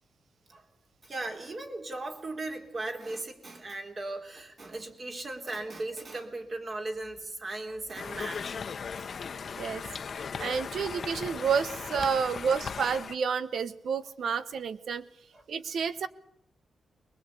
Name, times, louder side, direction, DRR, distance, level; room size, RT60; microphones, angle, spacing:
voice 1, 1.0-8.8 14.0-14.1 15.3-15.4, right 2 dB, 35° right, 4 dB, 3.5 m, -38 dB
Conversation, 7.9-13.1, left 6 dB, 45° left, 1.0 m, -38 dB
voice 2, 10.1-15.1 15.5-16.1, right 6 dB, 65° right, 14 dB, 1.1 m, -30 dB
22.0 x 20.5 x 8.4 m, 0.75 s
wide cardioid pair, 130°, 0 cm